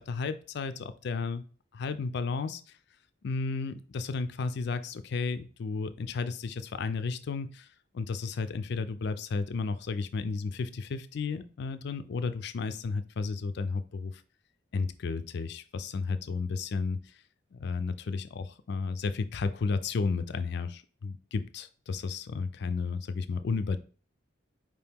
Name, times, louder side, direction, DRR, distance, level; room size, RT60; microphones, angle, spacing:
voice 1, 0.0-1.4 1.7-2.6 3.2-7.7 7.9-14.1 14.7-17.0 17.5-23.8, left 4 dB, 60° left, 11 dB, 0.4 m, -33 dB
4.8 x 2.9 x 3.5 m, 0.40 s
head